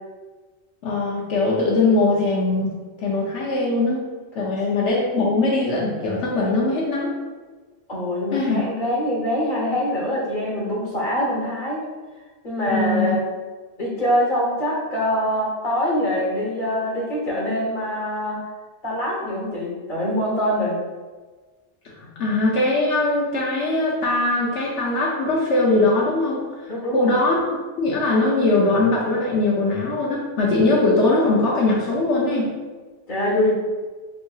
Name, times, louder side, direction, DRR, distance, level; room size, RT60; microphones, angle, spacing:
voice 1, 0.8-4.1 4.3-7.1 8.3-8.6 12.7-13.1 22.0-26.5 26.9-27.4 27.8-32.5, left 2 dB, 75° left, -3 dB, 1.0 m, -21 dB
voice 2, 7.9-11.9 12.4-13.2 13.8-18.4 18.8-20.8 26.7-27.1 33.1-33.5, equal, 45° left, -4 dB, 1.2 m, -24 dB
5.4 x 2.7 x 2.3 m, 1.4 s
omnidirectional pair, 1.2 m